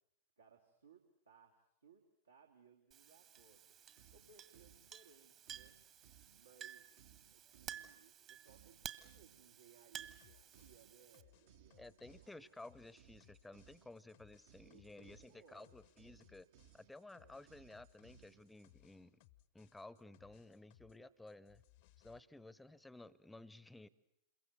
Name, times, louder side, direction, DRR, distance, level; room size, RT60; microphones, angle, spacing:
voice 1, 0.4-3.8 4.1-5.8 6.3-6.9 7.3-12.5 14.6-15.8 17.1-17.5, right 6 dB, 75° right, -1 dB, 2.5 m, -66 dB
Chink clink, 2.9-11.2, right 9 dB, 35° right, 1.5 m, -54 dB
sound 1, 3.4-18.7, right 9 dB, 55° right, 1.4 m, -67 dB
sound 2, 10.2-21.0 21.3-22.2, left 15 dB, 50° left, 1.0 m, -68 dB
voice 2, 11.8-16.5 16.7-19.2 19.5-21.6 22.0-23.9, left 2 dB, 5° left, 20 dB, 0.9 m, -55 dB
28.0 x 22.5 x 8.0 m, 0.75 s
figure-of-eight pair, 90°, 0 cm